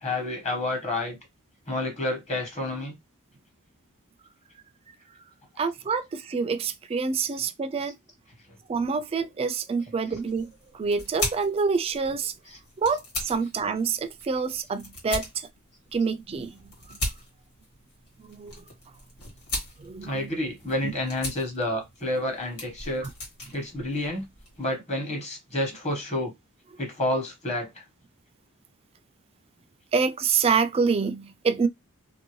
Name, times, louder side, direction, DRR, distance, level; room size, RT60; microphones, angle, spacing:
voice 1, 0.0-1.2 1.7-2.9 12.4-12.6 20.0-23.1 23.5-24.3 24.6-26.3 26.8-27.7, left 1 dB, 30° left, 1.2 m, -29 dB
voice 2, 5.6-8.0 8.7-12.3 12.8-15.5 15.9-17.0 18.2-18.6 19.8-20.3 20.8-20.9 23.0-23.1 29.9-31.7, right 5 dB, 25° right, 0.3 m, -27 dB
sound 1, 10.1-24.7, left 1 dB, 85° left, 1.6 m, -39 dB
2.6 x 2.6 x 3.0 m
head